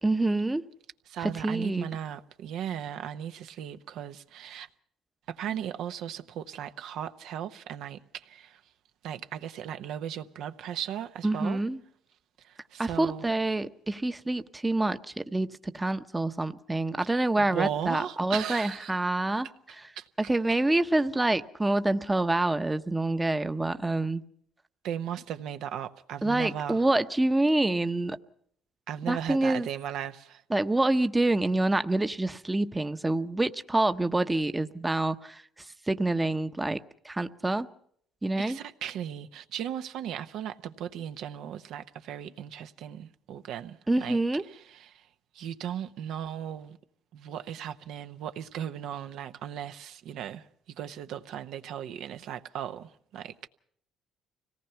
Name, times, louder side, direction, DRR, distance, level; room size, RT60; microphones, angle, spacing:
voice 1, 0.0-0.6 1.2-1.9 11.2-11.8 12.8-19.5 20.2-24.2 26.2-28.2 29.1-29.7 30.5-35.4 35.9-36.8 37.0-37.7 38.2-38.6 43.9-44.4, right 2 dB, 15° right, 0.8 m, -27 dB
voice 2, 1.1-4.7 5.3-8.6 9.0-11.6 12.4-13.3 17.1-18.9 20.0-20.1 24.8-26.9 28.9-30.4 38.4-44.2 44.5-45.1 45.3-46.8 47.1-50.5 50.8-53.5, right 9 dB, 75° right, 0.9 m, -37 dB
25.0 x 18.0 x 5.7 m
cardioid pair, 90°, 0 cm